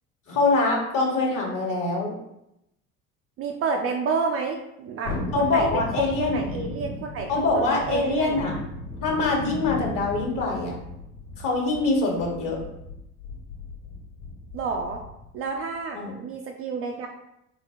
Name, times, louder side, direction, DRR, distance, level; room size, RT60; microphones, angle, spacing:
voice 1, 0.3-2.1 5.3-6.4 7.3-8.5 9.0-10.7 11.4-12.6 15.9-16.1, left 3 dB, 45° left, -1 dB, 1.3 m, -24 dB
voice 2, 3.4-8.4 14.5-15.0 15.3-17.1, right 4 dB, 35° right, 2 dB, 0.4 m, -30 dB
Thunderstorm, 5.0-15.3 15.6-15.7, left 2 dB, 85° left, 1.5 m, -36 dB
3.8 x 2.1 x 3.6 m, 0.83 s
hypercardioid pair, 70°, 44 cm